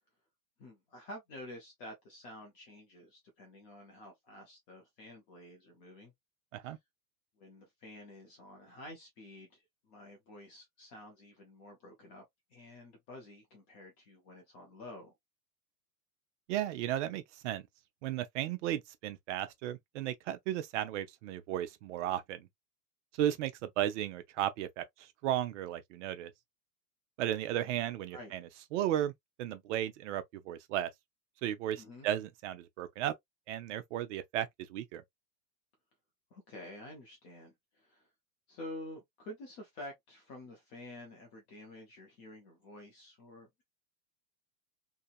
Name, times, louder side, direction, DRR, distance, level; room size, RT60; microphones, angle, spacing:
voice 1, 0.6-6.1 6.6-6.8 7.4-12.2 12.5-15.1 28.1-28.3 31.8-32.1 36.3-38.1 38.5-43.6, left 1 dB, 20° left, 0.3 m, -50 dB
voice 2, 16.5-17.6 18.0-22.5 23.2-24.8 25.2-26.3 27.2-28.4 28.7-29.1 29.4-30.9 31.4-33.1 33.5-35.0, right 12 dB, 50° right, 0.6 m, -34 dB
2.8 x 2.7 x 2.3 m
hypercardioid pair, 135°, 48 cm